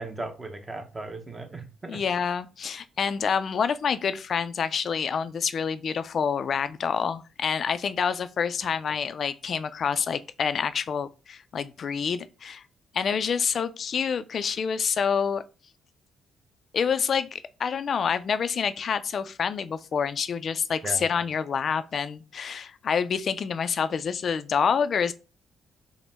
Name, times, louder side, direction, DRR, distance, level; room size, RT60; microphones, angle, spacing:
voice 1, 0.0-2.0 20.8-21.0, right 2 dB, 25° right, 0.8 m, -37 dB
voice 2, 1.9-12.6 12.9-15.4 16.7-25.1, left 6 dB, 55° left, 0.3 m, -27 dB
5.0 x 2.1 x 3.4 m
cardioid pair, 90°, 0 cm